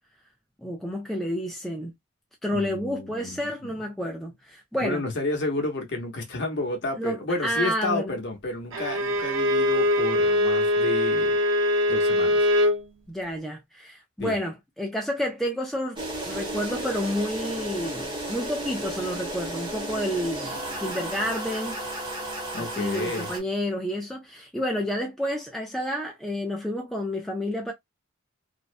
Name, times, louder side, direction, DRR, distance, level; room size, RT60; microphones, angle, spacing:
voice 1, 0.6-1.9 2.4-5.0 7.0-8.2 13.1-21.8 22.5-27.7, equal, ahead, 0.3 m, -30 dB
voice 2, 2.5-3.7 4.8-11.4 11.9-12.4 14.2-14.4 22.5-23.3, left 2 dB, 50° left, 0.8 m, -31 dB
Bowed string instrument, 8.7-12.8, left 1 dB, 65° right, 0.7 m, -22 dB
sound 1, 16.0-23.4, right 1 dB, 20° right, 0.7 m, -33 dB
2.6 x 2.1 x 2.4 m
head